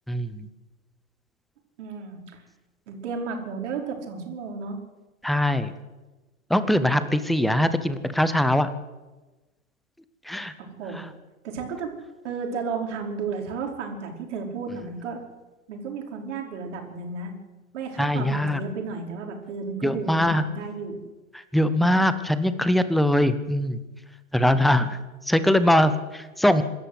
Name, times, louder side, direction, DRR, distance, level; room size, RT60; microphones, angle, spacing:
voice 1, 0.1-0.5 5.2-5.7 6.5-8.7 10.3-10.5 18.0-18.6 19.8-20.4 21.5-23.8 24.3-25.0 25.3-26.6, left 1 dB, ahead, 13 dB, 0.7 m, -22 dB
voice 2, 1.8-2.4 2.9-4.8 10.6-11.1 11.4-11.9 12.2-15.2 15.7-17.3 17.7-21.0, right 5 dB, 50° right, 2 dB, 5.1 m, -33 dB
26.0 x 13.0 x 8.2 m, 1.2 s
hypercardioid pair, 125°, 44 cm